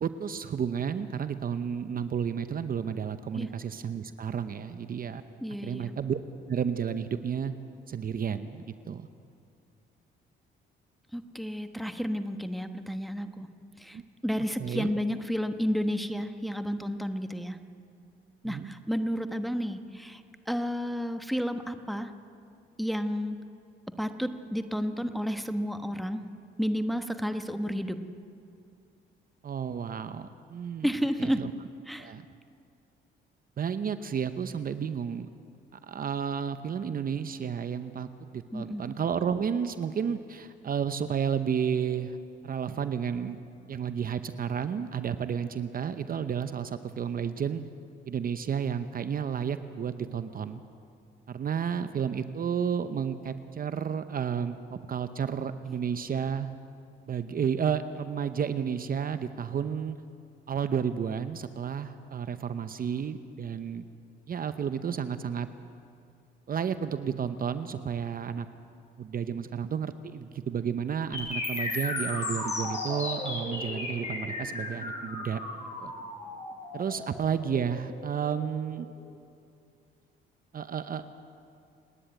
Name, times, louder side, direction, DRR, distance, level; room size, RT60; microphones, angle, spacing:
voice 1, 0.0-5.2 5.6-6.2 6.5-7.5 7.9-9.1 13.9-14.0 14.6-14.9 18.4-18.7 29.4-30.9 31.2-31.5 32.0-32.3 33.6-35.3 35.7-42.2 42.4-43.4 43.7-47.6 48.1-50.6 51.3-56.5 57.1-60.0 60.5-63.8 64.3-65.5 66.5-68.5 69.0-75.4 75.8-75.9 76.7-78.9 80.5-81.1, right 7 dB, 45° right, 11 dB, 0.8 m, -32 dB
voice 2, 5.4-5.9 11.1-13.5 13.8-17.6 18.4-20.2 20.5-22.1 22.8-23.4 24.0-26.2 26.6-28.0 30.8-31.4 31.9-32.1 38.5-38.8, equal, ahead, 8 dB, 1.2 m, -31 dB
sound 1, 71.1-79.1, left 2 dB, 35° left, 7.2 m, -35 dB
29.0 x 10.0 x 9.0 m, 2.5 s
cardioid pair, 90°, 20 cm